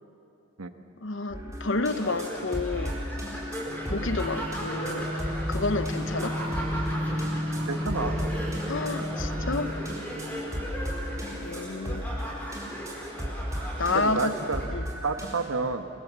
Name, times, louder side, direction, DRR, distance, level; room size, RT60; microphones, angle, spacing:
voice 1, 1.0-3.0 3.9-5.1 5.5-6.4 8.7-9.8 11.4-12.0 13.8-14.3 14.7-14.9, left 3 dB, 60° left, 11 dB, 0.9 m, -30 dB
sound 1, 1.3-15.5, equal, 15° right, 4.3 m, -35 dB
sound 2, 1.9-14.6, right 1 dB, 10° left, 5.4 m, -38 dB
sound 3, 3.6-10.0, equal, 45° right, 3.6 m, -33 dB
voice 2, 7.7-8.2 13.9-14.6 15.0-15.9, right 4 dB, 80° right, 7 dB, 1.4 m, -30 dB
26.5 x 24.0 x 7.5 m, 2.7 s
head